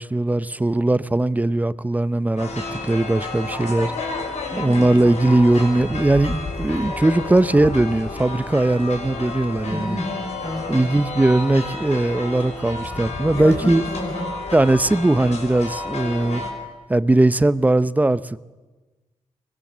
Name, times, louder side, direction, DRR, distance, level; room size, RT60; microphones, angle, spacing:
voice 1, 0.0-3.9 4.6-10.0 10.7-13.8 14.5-16.4 16.9-18.4, right 2 dB, 15° right, 0.7 m, -19 dB
sound 1, 2.4-16.5, left 3 dB, 75° left, 5.8 m, -31 dB
voice 2, 4.5-4.9 9.6-10.8 13.3-14.3, left 1 dB, 35° left, 6.2 m, -30 dB
24.0 x 20.5 x 7.4 m
cardioid pair, 100°, 12 cm